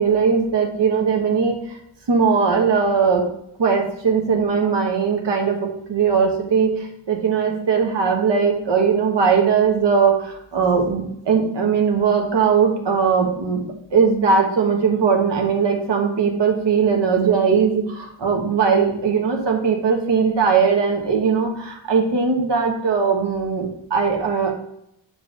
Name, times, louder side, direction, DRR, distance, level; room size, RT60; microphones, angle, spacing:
voice 1, 0.0-1.6 2.1-3.3 3.6-13.6 13.9-24.5, right 6 dB, 65° right, 2 dB, 1.4 m, -19 dB
7.4 x 3.4 x 6.4 m, 0.76 s
wide cardioid pair, 145°, 46 cm